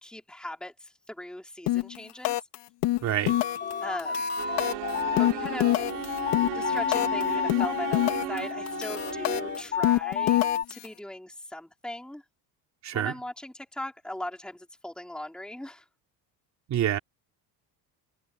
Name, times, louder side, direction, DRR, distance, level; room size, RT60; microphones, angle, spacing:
voice 1, 0.0-2.4 3.8-4.8 5.2-5.9 6.5-12.2 12.9-15.8, left 1 dB, ahead, 3.7 m, -39 dB
sound 1, 1.7-2.0 2.2-2.6 2.8-3.7 4.0-7.2 7.5-8.4 8.7-10.9, left 17 dB, 80° left, 2.8 m, -26 dB
voice 2, 3.0-3.4 12.8-13.1 16.7-17.0, right 11 dB, 45° right, 3.4 m, -27 dB
sound 2, 3.3-10.6, left 7 dB, 25° left, 1.5 m, -31 dB
sound 3, 4.4-9.8, right 20 dB, 85° right, 3.6 m, -36 dB
cardioid pair, 170°, 40 cm